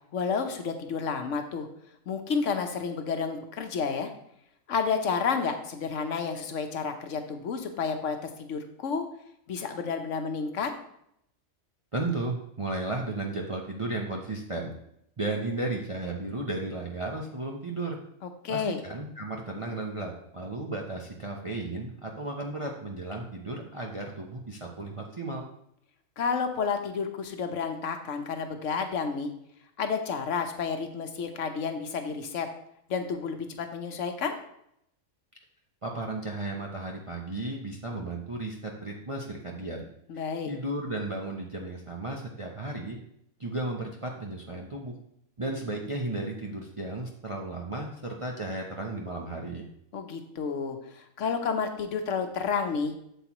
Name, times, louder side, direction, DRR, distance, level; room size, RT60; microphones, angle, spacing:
voice 1, 0.1-1.7 2.1-4.1 4.7-9.1 9.5-10.7 18.2-18.8 26.2-29.3 29.8-32.5 32.9-34.4 40.1-40.5 49.9-52.9, left 5 dB, 65° left, 6 dB, 1.2 m, -30 dB
voice 2, 11.9-14.7 15.2-18.0 18.5-25.5 35.8-39.8 40.1-43.0 43.4-44.9 45.4-49.7, right 2 dB, 30° right, 0 dB, 0.6 m, -34 dB
8.0 x 7.4 x 3.0 m, 0.74 s
omnidirectional pair, 1.5 m